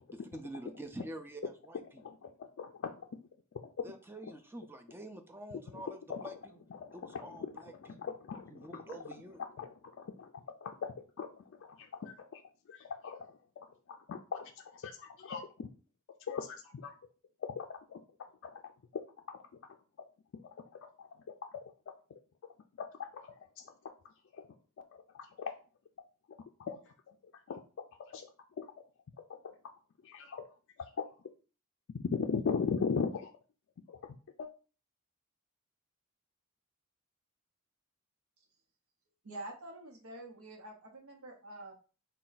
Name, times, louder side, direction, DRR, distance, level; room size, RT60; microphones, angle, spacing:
voice 1, 0.1-1.8 3.8-6.6 6.9-8.1 8.5-9.4, right 1 dB, 10° right, 5 dB, 0.4 m, -47 dB
voice 2, 2.0-3.1 3.8-3.9 5.7-6.3 6.7-7.5 8.0-8.8 9.6-10.3 10.6-12.4 12.7-13.3 14.1-15.7 16.3-16.9 17.6-18.0 18.4-18.5 20.4-20.5 20.8-21.1 21.5-21.6 22.8-23.2 23.6-23.9 24.3-24.5 25.1-25.5 26.6-26.8 27.5-27.6 28.1-28.3 28.6-28.7 29.4-29.5 30.0-30.4 30.8-31.1 31.9-33.3 33.9-34.0 34.4-34.5, left 5 dB, 60° left, 3 dB, 0.4 m, -38 dB
voice 3, 39.2-41.7, right 1 dB, 85° right, 1 dB, 0.8 m, -47 dB
4.3 x 2.2 x 3.9 m, 0.36 s
head